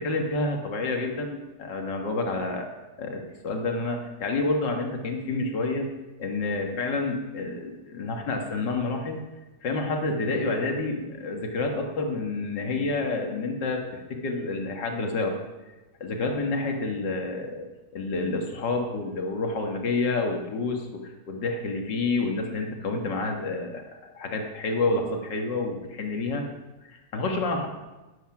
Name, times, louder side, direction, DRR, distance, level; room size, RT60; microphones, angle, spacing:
voice 1, 0.0-2.7 3.0-5.9 6.2-9.2 9.6-15.4 16.0-26.5 26.8-27.7, left 3 dB, 85° left, 2 dB, 2.2 m, -29 dB
19.5 x 8.2 x 6.0 m, 1.1 s
omnidirectional pair, 1.9 m